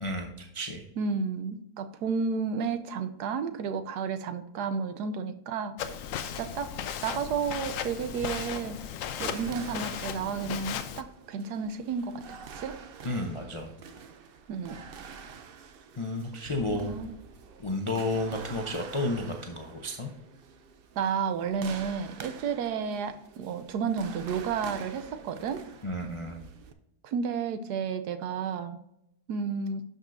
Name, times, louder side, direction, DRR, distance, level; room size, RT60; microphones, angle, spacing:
voice 1, 0.0-0.8 13.0-13.7 16.0-17.0 17.6-20.1 25.8-26.4, left 2 dB, 50° left, 1 dB, 0.3 m, -32 dB
voice 2, 1.0-5.7 6.2-6.7 7.0-8.8 9.2-12.8 14.5-14.8 16.7-17.1 21.0-25.6 27.0-28.8 29.3-29.8, right 6 dB, 85° right, 9 dB, 1.2 m, -32 dB
Walk footsteps, 5.8-11.0, left 8 dB, 70° left, 0.8 m, -36 dB
sound 1, 7.1-26.7, right 6 dB, 70° right, 0.5 m, -47 dB
12.0 x 5.3 x 2.6 m, 0.79 s
omnidirectional pair, 1.7 m